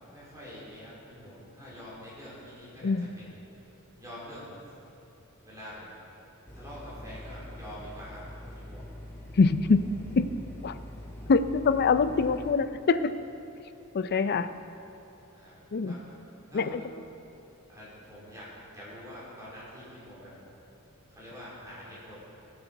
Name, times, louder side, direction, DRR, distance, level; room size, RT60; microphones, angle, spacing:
voice 1, 0.1-3.4 3.7-4.6 5.4-5.9 6.5-8.2 8.5-8.9 15.3-16.2 16.5-16.8 17.7-20.4 21.1-22.1, equal, 15° right, -8 dB, 3.2 m, -46 dB
sound 1, 6.5-12.5, left 1 dB, 10° left, 1.4 m, -44 dB
voice 2, 9.4-9.8 10.2-10.3 10.6-10.7 11.3-13.1 13.9-14.5 15.7-15.9 16.5-16.8, left 4 dB, 50° left, 12 dB, 0.4 m, -24 dB
18.0 x 7.9 x 4.6 m, 2.8 s
head